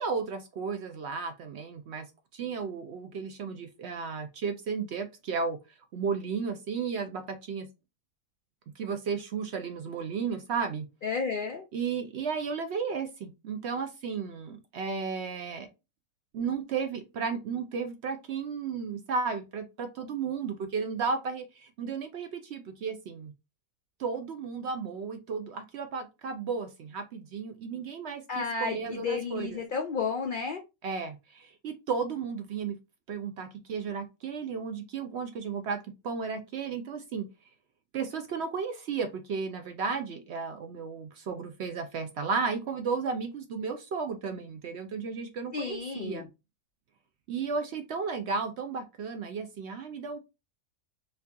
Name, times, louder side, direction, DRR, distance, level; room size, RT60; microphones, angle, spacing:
voice 1, 0.0-2.1 2.3-5.6 5.9-7.7 8.8-10.9 11.7-15.7 16.3-23.3 24.0-29.6 30.8-32.7 33.1-35.8 36.0-37.3 37.9-46.3 47.3-50.2, right 5 dB, 65° right, 0.7 m, -34 dB
voice 2, 11.0-11.6 28.3-30.6 45.5-46.3, left 5 dB, 70° left, 0.4 m, -32 dB
4.3 x 2.7 x 2.4 m
omnidirectional pair, 1.5 m